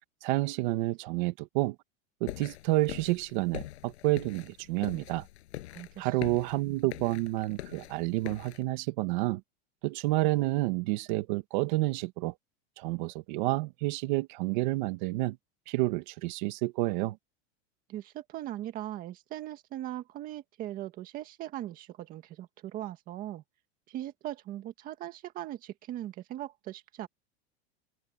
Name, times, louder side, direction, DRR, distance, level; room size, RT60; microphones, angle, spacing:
voice 1, 0.2-1.8 2.2-5.3 6.0-9.4 9.8-12.3 12.8-15.4 15.7-17.2, right 20 dB, 45° right, 1.9 m, -29 dB
sound 1, 2.3-8.6, left 15 dB, 75° left, 7.9 m, -44 dB
voice 2, 5.7-6.4 17.9-23.4 23.9-27.1, right 13 dB, 25° right, 1.8 m, -40 dB
open air
supercardioid pair, 175°, 33 cm